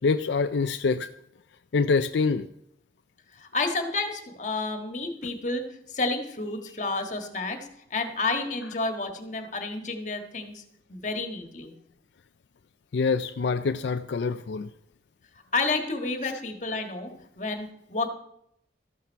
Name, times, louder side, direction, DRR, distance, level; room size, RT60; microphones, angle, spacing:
voice 1, 0.0-1.1 1.7-2.5 12.9-14.7, left 4 dB, 75° left, 8 dB, 0.4 m, -25 dB
voice 2, 3.3-10.6 10.9-11.7 15.5-17.1 17.4-18.1, left 3 dB, 40° left, 5 dB, 1.6 m, -30 dB
14.0 x 11.5 x 4.6 m, 0.77 s
head